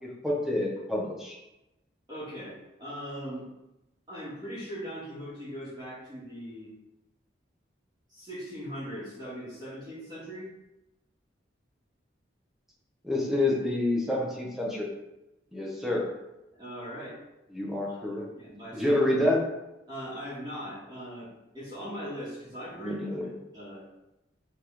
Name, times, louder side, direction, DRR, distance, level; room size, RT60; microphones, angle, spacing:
voice 1, 0.0-1.3 13.0-14.9 15.5-16.1 17.5-18.3 18.7-19.4 22.8-23.3, left 1 dB, ahead, -3 dB, 1.4 m, -28 dB
voice 2, 2.1-3.5 4.1-6.7 8.1-10.5 16.5-17.2 17.9-18.0 18.4-19.1 19.9-23.1 23.5-23.8, equal, 20° right, -10 dB, 2.4 m, -40 dB
5.8 x 4.2 x 5.0 m, 0.94 s
head